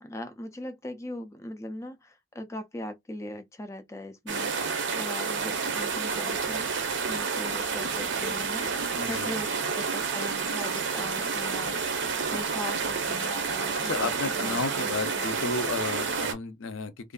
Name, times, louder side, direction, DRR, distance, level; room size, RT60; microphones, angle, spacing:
voice 1, 0.0-4.5 4.9-6.6 7.1-11.8 12.3-15.3, left 1 dB, 15° left, 0.3 m, -40 dB
sound 1, 4.3-16.3, right 5 dB, 60° right, 0.6 m, -30 dB
voice 2, 8.9-9.3 13.8-17.1, left 4 dB, 70° left, 0.5 m, -33 dB
2.5 x 2.3 x 2.2 m
head